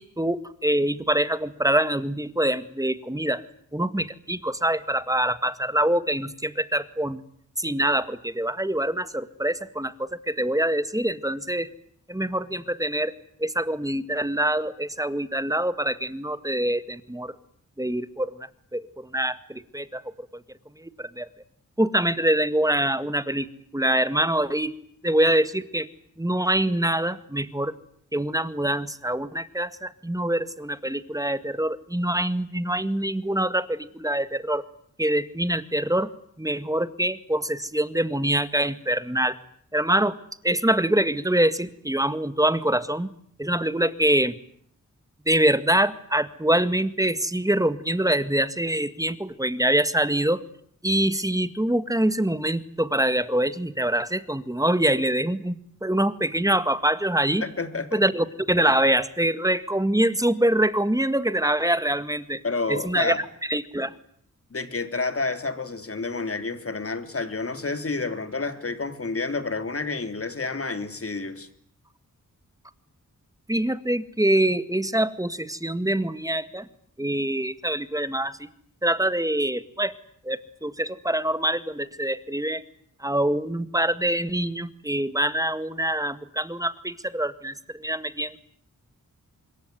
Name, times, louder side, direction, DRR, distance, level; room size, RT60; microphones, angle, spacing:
voice 1, 0.0-3.4 3.7-7.2 7.6-11.7 12.1-13.1 13.4-17.3 17.8-20.0 20.8-21.3 21.8-23.5 23.7-24.7 25.0-25.9 26.2-27.7 28.1-34.7 35.0-36.1 36.4-39.4 39.7-40.2 40.4-43.1 43.4-44.4 45.3-50.4 50.8-55.6 55.8-57.4 57.9-62.4 62.7-63.9 73.5-76.7 77.0-78.4 78.8-79.9 80.2-82.6 83.0-88.4, right 1 dB, 10° right, 2.0 m, -25 dB
voice 2, 57.4-58.0 62.4-63.2 64.5-71.5, left 3 dB, 45° left, 3.4 m, -29 dB
26.5 x 22.0 x 9.5 m
cardioid pair, 55°, 33 cm